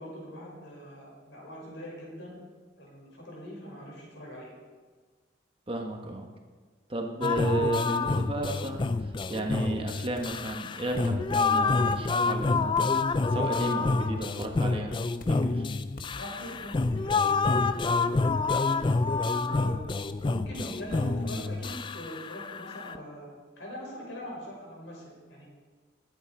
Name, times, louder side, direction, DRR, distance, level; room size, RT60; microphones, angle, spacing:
voice 1, 0.0-2.4 2.8-4.5 16.1-18.9 19.4-19.8 20.2-23.3 23.6-25.5, equal, 70° left, -2 dB, 5.2 m, -42 dB
voice 2, 5.7-6.3 6.9-12.8 13.2-15.0 15.3-15.7, right 2 dB, 30° right, 2 dB, 1.2 m, -33 dB
sound 1, 7.2-23.0, left 3 dB, 25° left, 0.3 m, -28 dB
sound 2, 9.2-9.4 10.1-10.4 11.0-11.2 11.9-12.1 12.7-12.9 13.6-13.9 14.4-14.6 15.2-15.5 16.0-16.1, left 2 dB, 45° left, 1.0 m, -50 dB
20.0 x 8.3 x 4.7 m, 1.4 s
head